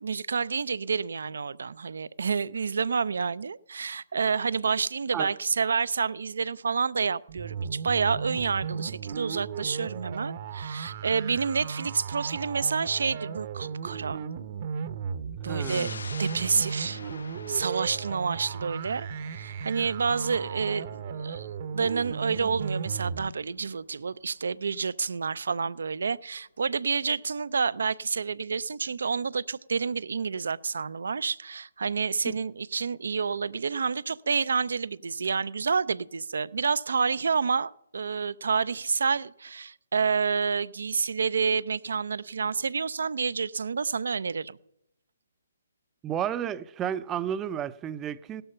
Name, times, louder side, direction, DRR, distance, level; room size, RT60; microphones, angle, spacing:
voice 1, 0.0-14.2 15.4-17.0 17.5-44.6, right 5 dB, 65° right, 0.4 m, -29 dB
sound 1, 7.3-23.3, right 6 dB, 40° right, 0.8 m, -35 dB
voice 2, 15.5-16.0 46.0-48.4, right 9 dB, 15° right, 0.5 m, -32 dB
sound 2, 15.6-26.6 27.0-27.1, left 4 dB, 75° left, 0.7 m, -47 dB
17.5 x 12.5 x 5.6 m
figure-of-eight pair, 140°, 0 cm